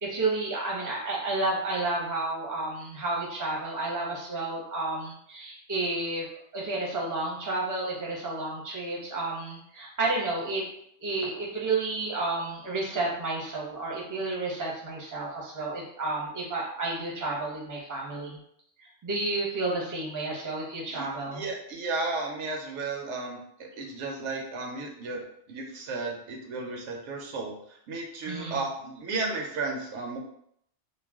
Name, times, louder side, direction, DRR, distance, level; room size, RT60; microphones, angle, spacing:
voice 1, 0.0-6.3 6.5-10.6 11.0-18.4 19.0-21.4 28.2-28.6, right 2 dB, 20° right, -4 dB, 0.6 m, -31 dB
voice 2, 20.9-30.2, right 3 dB, 80° right, 1 dB, 0.9 m, -34 dB
2.3 x 2.1 x 3.4 m, 0.71 s
omnidirectional pair, 1.2 m